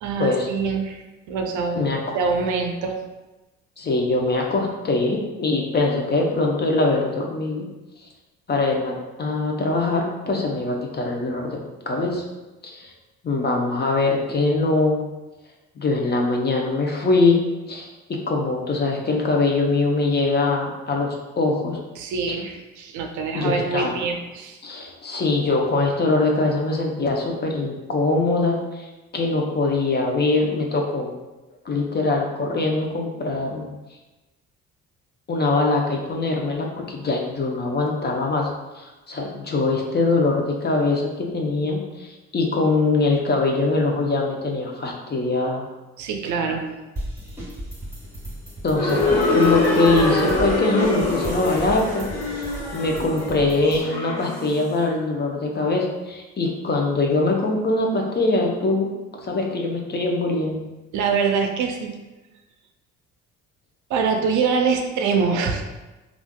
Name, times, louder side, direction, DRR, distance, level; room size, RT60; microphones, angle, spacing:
voice 1, 0.0-2.9 22.0-24.6 46.0-46.6 60.9-61.9 63.9-65.6, right 5 dB, 65° right, 4 dB, 0.5 m, -24 dB
voice 2, 3.8-7.7 8.5-11.5 11.9-12.2 12.6-12.9 13.2-15.0 15.8-17.4 17.7-17.9 18.3-21.8 22.3-22.4 23.3-23.9 24.6-28.9 29.1-31.1 31.6-33.7 35.3-38.5 38.8-45.7 48.6-58.9 59.2-60.6, left 3 dB, 30° left, 0 dB, 0.6 m, -22 dB
sound 1, 47.0-53.8, equal, 10° right, 1.4 m, -35 dB
sound 2, 48.7-54.7, left 2 dB, 85° left, 0.8 m, -24 dB
3.4 x 2.4 x 2.2 m, 1.1 s
supercardioid pair, 60°, 32 cm